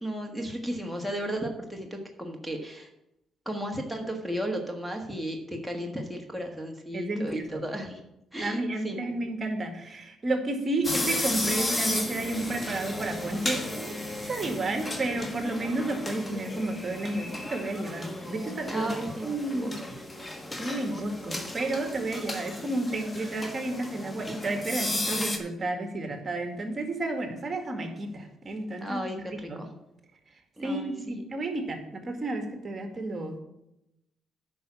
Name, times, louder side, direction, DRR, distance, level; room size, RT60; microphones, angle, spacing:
voice 1, 0.0-2.9 3.4-8.0 8.3-9.1 18.7-19.7 28.8-29.7 30.6-31.2, right 1 dB, ahead, 4 dB, 1.6 m, -34 dB
voice 2, 6.9-7.6 8.4-14.0 14.3-18.9 19.2-19.7 20.6-29.0 29.3-29.6 30.6-33.4, right 2 dB, 35° right, 5 dB, 1.9 m, -31 dB
sound 1, 10.8-25.4, left 1 dB, 20° left, 1.4 m, -34 dB
9.3 x 5.6 x 7.2 m, 0.86 s
cardioid pair, 90°, 0 cm